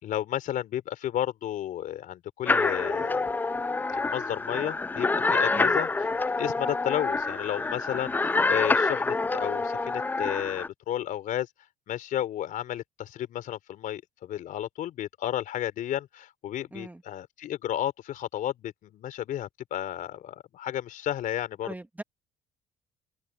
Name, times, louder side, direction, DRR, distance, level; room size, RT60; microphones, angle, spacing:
voice 1, 0.0-3.3 3.9-5.9 6.4-11.5 11.9-21.7, left 11 dB, 60° left, 3.6 m, -32 dB
sound 1, 2.5-10.7, left 3 dB, 10° left, 0.3 m, -27 dB
voice 2, 5.5-5.8 16.7-17.0 21.6-22.0, right 2 dB, 10° right, 2.7 m, -40 dB
hypercardioid pair, 65°, 15 cm